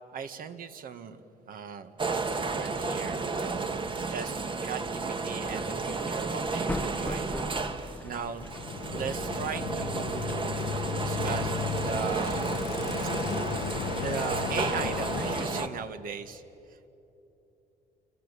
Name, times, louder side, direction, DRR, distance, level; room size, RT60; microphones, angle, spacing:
voice 1, 0.1-2.0 2.3-7.3 8.0-8.5 8.9-10.5 11.0-12.5 13.0-13.1 14.0-16.4 16.7-16.9, right 6 dB, 55° right, 9 dB, 1.9 m, -38 dB
sound 1, 2.0-15.7, right 4 dB, 30° right, 1.6 m, -32 dB
sound 2, 5.4-10.4, left 2 dB, 10° left, 0.9 m, -40 dB
Bicycle, 8.4-15.9, left 10 dB, 70° left, 1.0 m, -35 dB
29.5 x 24.0 x 8.4 m, 2.9 s
cardioid pair, 110°, 17 cm